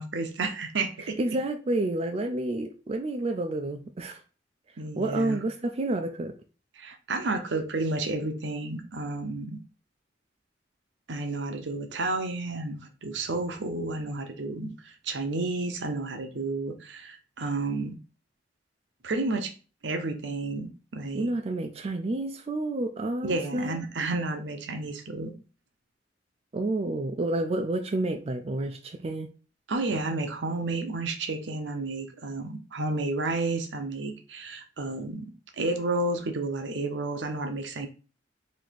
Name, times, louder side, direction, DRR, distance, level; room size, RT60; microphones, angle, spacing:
voice 1, 0.0-1.2 4.8-5.4 6.8-9.6 11.1-18.0 19.0-19.5 19.8-21.3 23.2-25.3 29.7-35.3 35.6-37.9, right 2 dB, 75° right, 0.7 m, -31 dB
voice 2, 1.2-4.2 4.9-6.3 21.1-23.8 26.5-29.3, right 2 dB, 35° right, 0.4 m, -29 dB
3.2 x 2.8 x 4.1 m
head